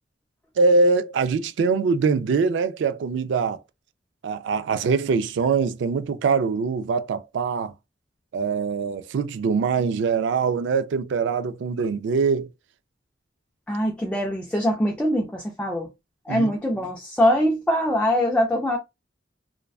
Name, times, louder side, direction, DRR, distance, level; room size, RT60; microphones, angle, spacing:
voice 1, 0.6-3.6 4.2-7.7 8.3-12.5 16.3-16.5, right 4 dB, 70° right, 0.3 m, -23 dB
voice 2, 13.7-15.9 16.3-18.8, equal, 5° left, 0.4 m, -23 dB
2.5 x 2.2 x 2.3 m
head